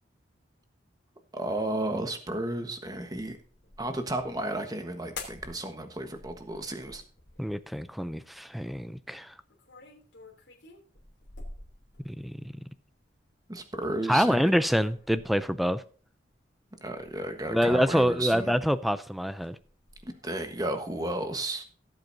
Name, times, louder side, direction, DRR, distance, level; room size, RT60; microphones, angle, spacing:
voice 1, 1.3-3.4 3.8-7.0 13.5-14.4 16.8-18.6 20.0-21.6, right 1 dB, 20° right, 1.3 m, -33 dB
sound 1, 3.4-4.5 5.1-5.7 6.0-7.7 9.5-12.4 13.6-14.1 14.5-15.6 16.8-18.8 19.1-20.6, left 3 dB, 65° left, 3.3 m, -48 dB
voice 2, 7.4-9.3 12.1-12.3 14.1-15.8 17.5-19.6, equal, ahead, 0.4 m, -26 dB
17.5 x 7.9 x 2.7 m
head